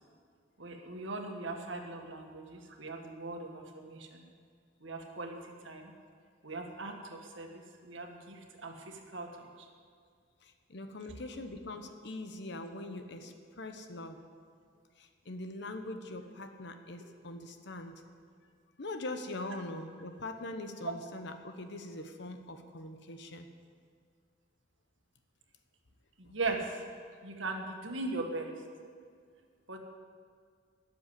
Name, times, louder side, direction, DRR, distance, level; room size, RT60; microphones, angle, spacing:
voice 1, 0.6-4.2 4.8-5.4 5.6-5.9 6.4-9.7 26.2-26.8 27.2-28.5 29.7-29.8, right 3 dB, 75° right, 3 dB, 1.6 m, -39 dB
voice 2, 10.4-14.2 15.0-18.0 18.8-23.5, left 2 dB, 65° left, 7 dB, 1.1 m, -42 dB
13.0 x 7.0 x 9.4 m, 2.1 s
head